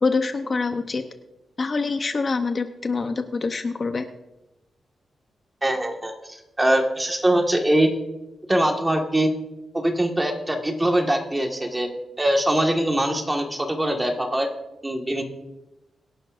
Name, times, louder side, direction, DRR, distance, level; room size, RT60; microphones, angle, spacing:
voice 1, 0.0-1.0 1.6-4.1, left 4 dB, 40° left, 7 dB, 0.8 m, -25 dB
voice 2, 5.6-7.9 8.5-9.3 9.7-11.9 12.2-14.5 14.8-15.2, right 1 dB, 15° right, 2 dB, 1.8 m, -22 dB
24.0 x 11.0 x 2.6 m, 0.97 s
wide cardioid pair, 120°, 0 cm